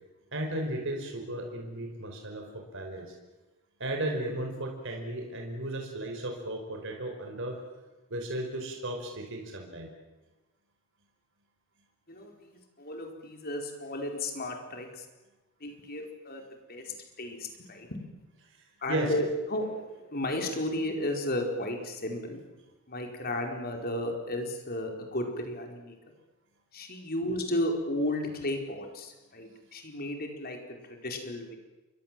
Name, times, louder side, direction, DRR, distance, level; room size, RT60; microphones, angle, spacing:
voice 1, 0.3-3.1 3.8-7.6 8.1-9.9 18.5-19.1, right 1 dB, 60° right, 2 dB, 4.8 m, -35 dB
voice 2, 12.1-15.1 15.6-17.9 18.8-22.4 22.9-26.0 26.7-31.6, left 1 dB, 45° left, 3 dB, 4.6 m, -34 dB
29.0 x 24.0 x 7.6 m, 1.1 s
head